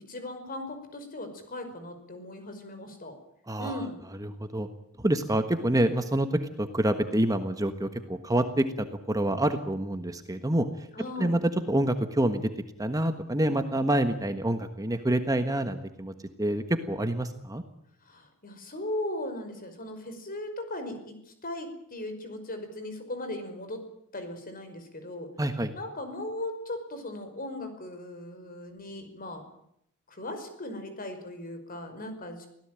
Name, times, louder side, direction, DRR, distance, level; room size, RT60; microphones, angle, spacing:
voice 1, 0.0-3.1 3.6-4.0 10.9-11.4 18.1-23.8 24.1-25.3 25.7-29.4 30.1-32.5, left 1 dB, 40° left, 8 dB, 5.3 m, -38 dB
voice 2, 3.5-3.8 4.2-4.7 5.0-10.9 11.2-11.4 11.7-12.5 12.8-17.6 25.4-25.7, right 1 dB, 15° right, 8 dB, 1.4 m, -27 dB
24.5 x 17.0 x 9.1 m, 0.74 s
head